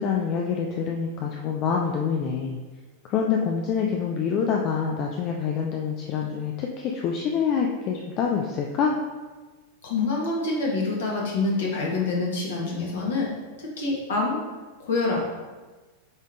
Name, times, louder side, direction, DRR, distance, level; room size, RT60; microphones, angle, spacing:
voice 1, 0.0-2.6 3.0-9.0, left 6 dB, 40° left, 0 dB, 0.6 m, -26 dB
voice 2, 9.8-13.3 13.6-14.4 14.8-15.2, left 3 dB, 60° left, -3 dB, 1.8 m, -26 dB
8.1 x 3.6 x 3.7 m, 1.3 s
figure-of-eight pair, 90°, 0 cm